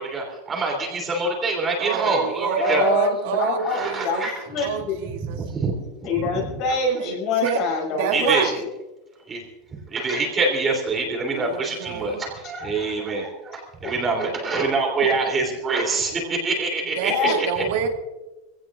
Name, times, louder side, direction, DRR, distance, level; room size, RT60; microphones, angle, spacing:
voice 1, 0.0-2.9 3.8-4.3 5.4-5.8 8.1-8.5 9.3-9.4 9.9-17.1, right 3 dB, 15° right, 0 dB, 3.2 m, -25 dB
voice 2, 1.8-4.2 4.6-4.8 7.0-7.1 7.4-7.6 8.0-8.5 11.3-12.2 16.1-16.4 17.0-17.9, right 7 dB, 60° right, 1 dB, 2.2 m, -27 dB
voice 3, 2.6-5.0 6.0-8.7 12.6-12.9 13.8-13.9 15.0-15.1 17.1-17.4, left 3 dB, 40° left, -1 dB, 6.4 m, -25 dB
25.5 x 17.0 x 2.5 m, 1.1 s
supercardioid pair, 175°, 0 cm